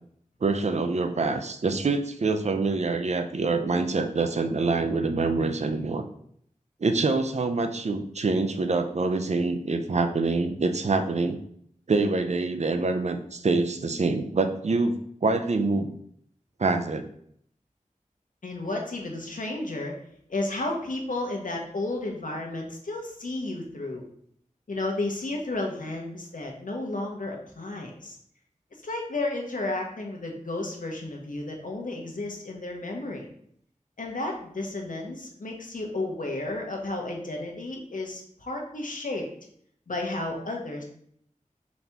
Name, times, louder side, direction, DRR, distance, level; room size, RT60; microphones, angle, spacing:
voice 1, 0.4-6.0 6.8-11.4 11.9-15.9 16.6-17.1, right 3 dB, 55° right, 7 dB, 0.4 m, -25 dB
voice 2, 18.4-19.9 20.3-24.0 24.7-28.2 28.8-33.3 34.0-39.2 39.9-40.8, left 2 dB, 80° left, 1 dB, 0.8 m, -32 dB
4.1 x 2.8 x 3.4 m, 0.66 s
wide cardioid pair, 50°, 14 cm